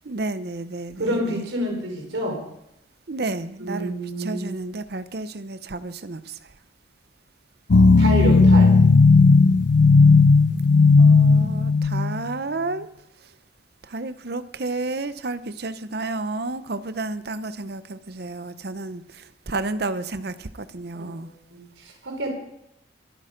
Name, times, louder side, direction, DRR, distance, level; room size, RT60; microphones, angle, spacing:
voice 1, 0.0-1.4 3.1-6.5 11.0-12.9 13.8-21.3, right 2 dB, 55° right, 13 dB, 0.7 m, -31 dB
voice 2, 1.0-2.4 3.6-4.5 8.0-8.7 20.9-22.3, right 1 dB, 80° right, 1 dB, 4.5 m, -28 dB
sound 1, 7.7-12.3, left 4 dB, 65° left, 0.5 m, -14 dB
22.5 x 8.8 x 5.1 m, 0.81 s
head